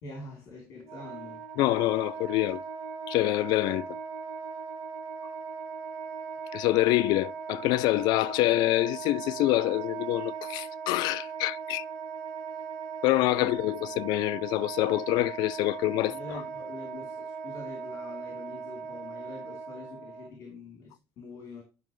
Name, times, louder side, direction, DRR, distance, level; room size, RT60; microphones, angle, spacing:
voice 1, 0.0-1.4 12.5-12.6 13.3-13.5 16.0-21.6, left 3 dB, 55° left, 3.2 m, -44 dB
Wind instrument woodwind instrument, 0.8-20.3, right 6 dB, 80° right, 1.5 m, -39 dB
voice 2, 1.6-2.6 3.1-4.0 6.5-11.8 13.0-16.2, left 18 dB, 75° left, 0.4 m, -26 dB
11.0 x 5.6 x 3.1 m
cardioid pair, 140°, 7 cm